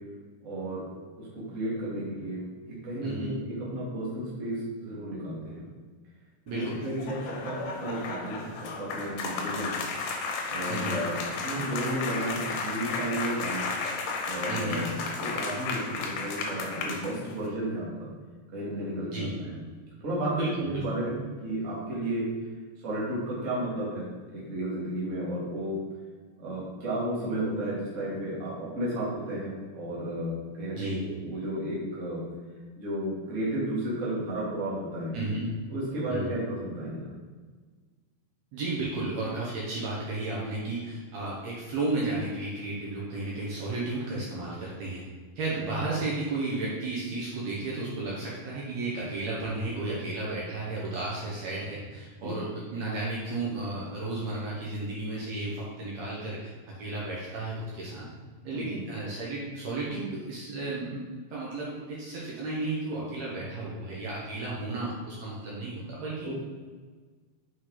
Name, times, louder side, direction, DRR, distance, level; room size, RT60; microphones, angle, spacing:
voice 1, 0.4-0.9 1.2-5.6 6.5-9.8 10.5-13.7 14.2-14.9 15.2-18.1 18.5-19.6 20.0-22.3 22.8-25.8 26.4-32.2 32.8-35.1 35.7-37.1 52.2-52.3 58.5-58.6 66.2-66.3, right 1 dB, 30° right, -7 dB, 1.7 m, -33 dB
voice 2, 3.0-3.3 6.5-6.8 10.7-11.0 14.5-14.8 19.1-19.4 20.3-20.8 30.7-31.0 35.1-35.6 36.1-36.3 38.5-45.0 45.4-58.1 58.4-66.3, right 2 dB, 65° right, -5 dB, 2.1 m, -33 dB
sound 1, 6.5-17.5, left 4 dB, 80° left, 2.3 m, -33 dB
6.1 x 5.4 x 3.9 m, 1.5 s
omnidirectional pair, 3.7 m